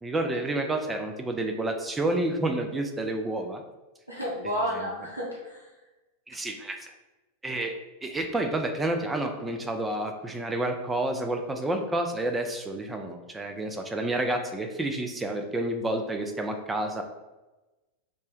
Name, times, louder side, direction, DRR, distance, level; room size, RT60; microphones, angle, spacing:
voice 1, 0.0-3.6 6.3-6.9 7.4-7.8 8.0-17.0, right 1 dB, 10° right, 4 dB, 0.3 m, -29 dB
voice 2, 4.1-5.7, equal, 90° left, -6 dB, 0.6 m, -32 dB
2.6 x 2.1 x 3.4 m, 1.1 s
figure-of-eight pair, 90°, 0 cm